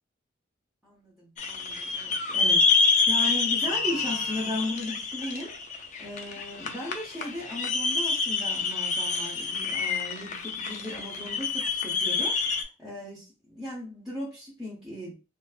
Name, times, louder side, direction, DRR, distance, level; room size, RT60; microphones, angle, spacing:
voice 1, 0.8-2.6 3.1-5.5 6.0-12.4 12.8-15.1, left 1 dB, 5° right, -8 dB, 0.7 m, -36 dB
sound 1, 1.4-12.6, left 4 dB, 35° left, 0.3 m, -27 dB
2.6 x 2.5 x 2.3 m, 0.31 s
head